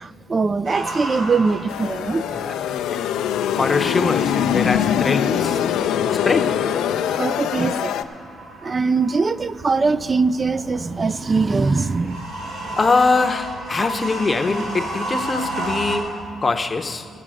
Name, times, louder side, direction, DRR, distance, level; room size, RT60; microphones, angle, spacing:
voice 1, 0.0-2.3 7.2-8.1 8.6-12.3, right 4 dB, 30° right, 0.3 m, -22 dB
sound 1, 0.6-16.0, right 1 dB, 85° right, 3.3 m, -34 dB
sound 2, 1.7-8.0, left 9 dB, 85° left, 0.4 m, -23 dB
voice 2, 3.5-5.6 6.2-6.7 12.8-17.1, left 3 dB, 30° left, 0.7 m, -22 dB
15.5 x 7.3 x 6.2 m
cardioid pair, 90°, 0 cm